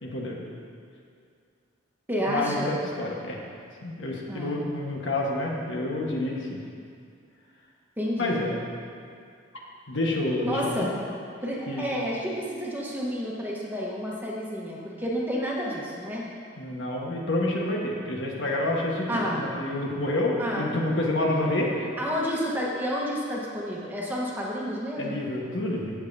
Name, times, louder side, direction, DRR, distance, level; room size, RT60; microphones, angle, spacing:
voice 1, 0.0-0.4 2.3-3.4 3.8-6.6 8.2-8.5 9.9-10.9 11.7-11.9 16.6-21.9 25.0-25.9, left 1 dB, 70° left, -2 dB, 1.3 m, -28 dB
voice 2, 2.1-2.8 4.3-4.5 8.0-8.3 10.4-11.0 11.4-16.3 19.1-19.5 20.4-21.0 22.0-25.2, equal, 10° right, -4 dB, 1.1 m, -30 dB
15.5 x 7.2 x 2.7 m, 2.3 s
head